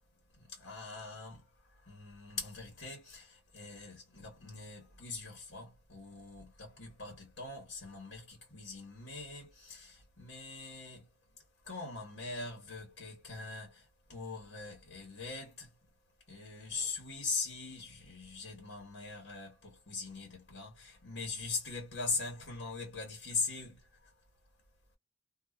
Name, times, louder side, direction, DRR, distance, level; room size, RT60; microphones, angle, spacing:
voice 1, 0.4-1.4 1.9-11.0 11.7-13.8 14.1-15.7 16.3-23.8, left 4 dB, 80° left, 1.3 m, -41 dB
2.6 x 2.4 x 2.3 m
head